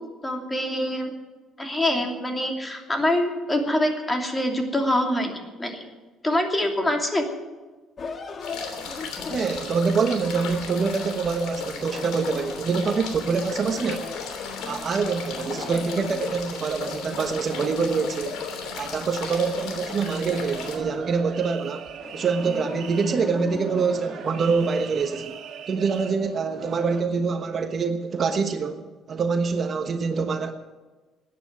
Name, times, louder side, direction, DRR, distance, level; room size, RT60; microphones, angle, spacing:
voice 1, 0.2-1.1 1.6-5.8 6.2-7.3, left 1 dB, 15° left, 3 dB, 2.8 m, -25 dB
sound 1, 8.0-11.5 12.3-15.0 15.3-16.5 16.9-18.7 18.9-21.3 21.9-25.2, left 4 dB, 40° left, 1.6 m, -40 dB
sound 2, 8.4-20.8, left 5 dB, 85° left, 3.0 m, -35 dB
voice 2, 9.3-14.1 14.6-18.4 18.8-25.3 25.7-30.5, right 5 dB, 45° right, 7 dB, 1.1 m, -25 dB
sound 3, 20.0-27.0, right 8 dB, 65° right, 1.5 m, -41 dB
14.0 x 9.7 x 9.5 m, 1.3 s
cardioid pair, 100°, 0 cm